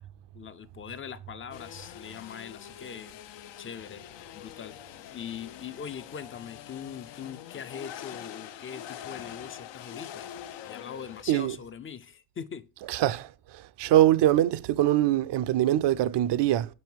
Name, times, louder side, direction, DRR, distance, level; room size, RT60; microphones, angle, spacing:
voice 1, 0.3-3.2 3.6-4.0 4.3-10.3 10.7-12.6, left 7 dB, 30° left, 0.4 m, -41 dB
sound 1, 1.5-11.2, left 10 dB, 70° left, 0.6 m, -44 dB
voice 2, 12.9-13.3 13.8-16.7, right 13 dB, 65° right, 0.6 m, -23 dB
5.5 x 5.3 x 4.5 m
cardioid pair, 115°, 46 cm